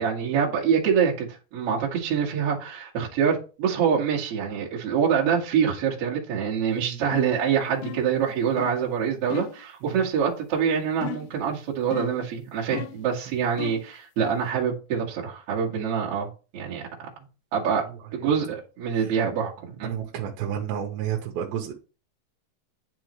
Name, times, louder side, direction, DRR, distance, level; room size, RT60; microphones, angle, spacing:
voice 1, 0.0-17.1 17.5-17.8 18.1-19.9, right 7 dB, 50° right, 2.2 m, -25 dB
sound 1, 7.1-7.4 7.8-8.2 8.6-8.8 9.3-9.6 11.0-11.4 11.9-12.3 12.7-13.1 13.6-13.9, left 14 dB, 80° left, 2.2 m, -35 dB
voice 2, 19.8-21.7, right 9 dB, 80° right, 2.6 m, -31 dB
10.0 x 3.8 x 3.1 m
omnidirectional pair, 4.3 m